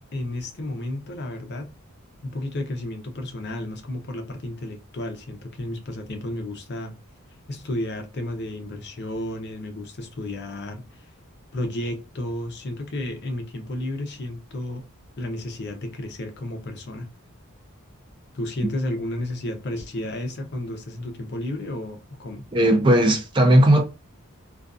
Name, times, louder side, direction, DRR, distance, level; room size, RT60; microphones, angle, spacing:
voice 1, 0.1-1.7 2.2-6.9 7.5-11.1 11.5-14.8 15.2-17.1 18.3-22.5, left 1 dB, 50° left, 0.6 m, -32 dB
voice 2, 22.5-23.8, right 1 dB, 20° right, 0.4 m, -16 dB
2.5 x 2.3 x 2.3 m
head